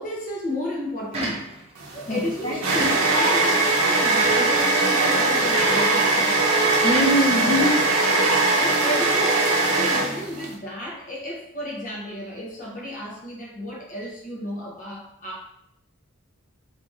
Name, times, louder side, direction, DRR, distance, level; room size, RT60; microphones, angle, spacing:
voice 1, 0.0-1.5 1.9-6.4 8.1-15.4, left 1 dB, 40° left, -4 dB, 1.0 m, -33 dB
sound 1, 1.1-1.8 2.7-3.4 4.2-4.6 5.5-5.9 6.9-7.8, right 2 dB, 25° right, 0.6 m, -31 dB
sound 2, 1.8-10.5, right 2 dB, 80° right, 0.7 m, -20 dB
voice 2, 2.1-2.9 6.8-8.1, equal, 20° left, -4 dB, 0.4 m, -24 dB
3.0 x 2.8 x 3.4 m, 0.71 s
head